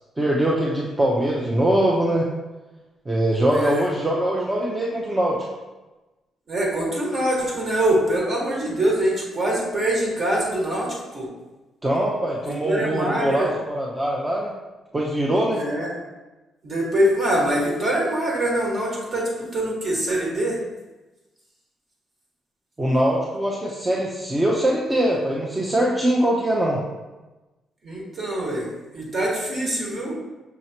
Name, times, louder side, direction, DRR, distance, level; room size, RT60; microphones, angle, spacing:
voice 1, 0.2-2.3 3.1-5.4 11.8-14.5 14.9-15.6 22.8-26.8, right 1 dB, 20° right, -3 dB, 0.6 m, -22 dB
voice 2, 3.5-3.8 6.5-11.3 12.4-13.5 15.5-15.9 16.6-20.6 27.8-28.7 28.9-30.1, right 1 dB, 45° right, -3 dB, 1.5 m, -24 dB
5.7 x 3.0 x 2.8 m, 1.1 s
cardioid pair, 90°, 0 cm